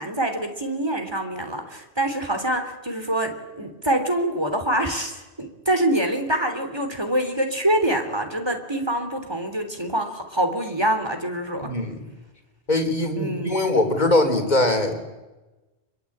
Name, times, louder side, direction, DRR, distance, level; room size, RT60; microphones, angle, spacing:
voice 1, 0.0-11.7 13.2-13.6, right 1 dB, 20° right, 6 dB, 3.5 m, -25 dB
voice 2, 11.6-12.1 12.7-14.9, left 2 dB, 40° left, 5 dB, 3.8 m, -21 dB
28.0 x 23.0 x 8.8 m, 1.1 s
omnidirectional pair, 1.1 m